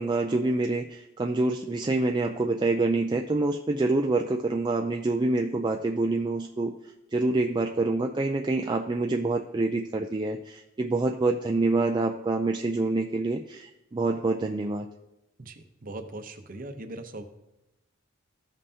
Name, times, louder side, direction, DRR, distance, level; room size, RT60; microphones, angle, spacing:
voice 1, 0.0-6.7 7.1-14.9, right 2 dB, 20° right, 2 dB, 0.3 m, -26 dB
voice 2, 15.4-17.2, right 2 dB, 40° right, 7 dB, 0.7 m, -40 dB
14.5 x 5.5 x 2.8 m, 0.93 s
head